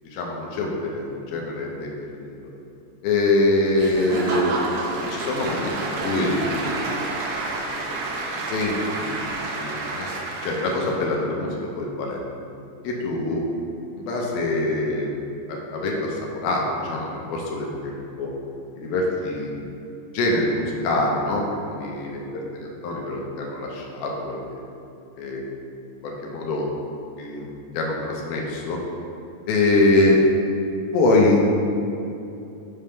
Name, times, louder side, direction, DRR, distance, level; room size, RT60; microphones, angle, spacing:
voice 1, 0.1-2.4 3.0-4.6 5.1-6.9 7.7-7.8 8.4-9.2 9.5-12.2 12.8-13.4 13.9-15.1 15.5-18.3 18.7-19.5 20.1-22.3 22.6-24.6 25.2-25.4 26.0-26.7 27.2-28.8 29.5-30.2 30.9-31.5, left 2 dB, 80° left, -1 dB, 2.6 m, -24 dB
Applause / Crowd, 3.8-11.1, right 3 dB, 80° right, 1.7 m, -29 dB
6.3 x 3.5 x 5.6 m, 2.7 s
omnidirectional pair, 4.3 m